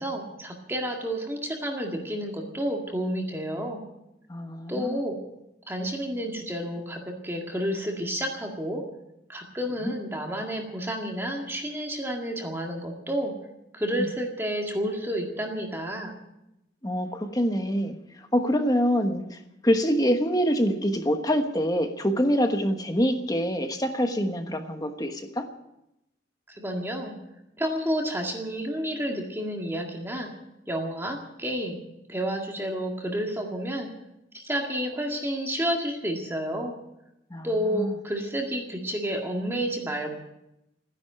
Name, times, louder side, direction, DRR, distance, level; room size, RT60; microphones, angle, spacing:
voice 1, 0.0-3.8 4.7-5.2 5.7-8.8 9.3-13.3 13.7-16.1 26.5-27.1 27.6-30.3 30.7-31.8 32.1-33.9 34.3-36.7 37.4-40.1, equal, 15° right, 1 dB, 1.9 m, -30 dB
voice 2, 4.3-5.0 9.8-10.0 14.0-14.1 16.8-25.5 37.3-37.9, equal, 20° left, 6 dB, 1.2 m, -25 dB
15.0 x 10.5 x 8.8 m, 0.88 s
head